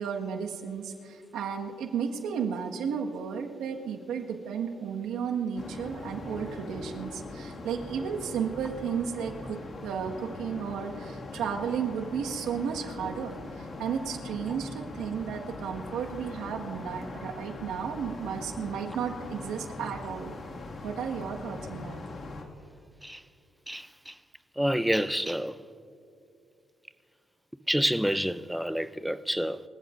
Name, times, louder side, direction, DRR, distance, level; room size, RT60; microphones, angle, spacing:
voice 1, 0.0-20.3 20.8-22.0, right 7 dB, 90° right, 1.5 m, -33 dB
sound 1, 5.6-22.4, left 2 dB, 50° left, 2.0 m, -41 dB
voice 2, 23.7-24.2 24.6-25.6 27.7-29.6, equal, ahead, 0.5 m, -28 dB
27.0 x 15.5 x 2.6 m
cardioid pair, 90°, 0 cm